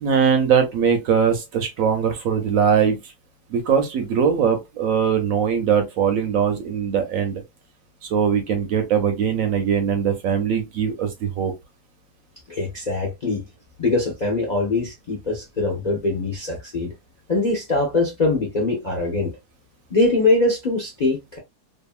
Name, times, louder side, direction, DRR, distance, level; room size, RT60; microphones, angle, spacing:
voice 1, 0.0-3.0 3.5-7.4 8.0-11.5, right 7 dB, 70° right, 0.9 m, -21 dB
voice 2, 12.5-13.4 13.8-16.9 17.3-19.3 19.9-21.4, left 2 dB, 45° left, 0.5 m, -22 dB
2.7 x 2.6 x 2.3 m
omnidirectional pair, 1.7 m